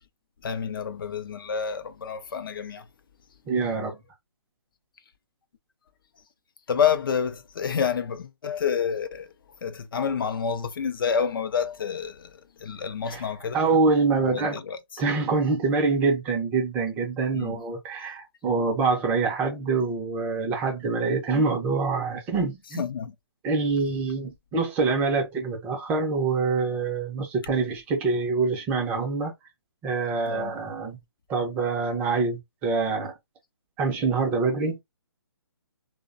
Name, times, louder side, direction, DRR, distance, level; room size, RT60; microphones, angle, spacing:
voice 1, 0.4-2.9 6.7-9.3 9.6-13.6 14.2-15.0 17.3-17.6 22.8-23.1 30.2-30.6, left 7 dB, 55° left, 0.4 m, -28 dB
voice 2, 3.5-4.0 13.1-13.2 13.5-14.6 15.0-22.9 23.4-29.3 29.8-31.0 31.3-33.1 33.8-34.8, right 4 dB, 10° right, 0.4 m, -25 dB
2.5 x 2.1 x 2.4 m
hypercardioid pair, 150°, 14 cm